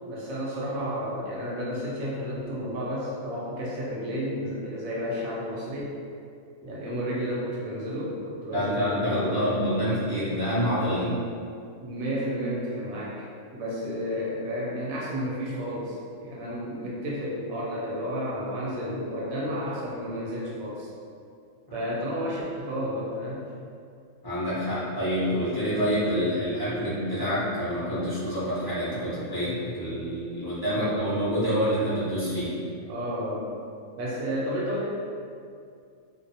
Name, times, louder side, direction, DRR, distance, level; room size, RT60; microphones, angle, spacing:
voice 1, 0.0-5.9 6.6-9.5 10.9-11.2 11.8-20.9 21.7-23.4 30.7-31.1 32.9-33.6 34.0-34.9, equal, 80° right, -5 dB, 1.0 m, -32 dB
voice 2, 8.5-11.1 21.7-21.8 24.2-32.5, equal, 25° left, -13 dB, 0.5 m, -27 dB
2.6 x 2.0 x 2.6 m, 2.3 s
omnidirectional pair, 1.5 m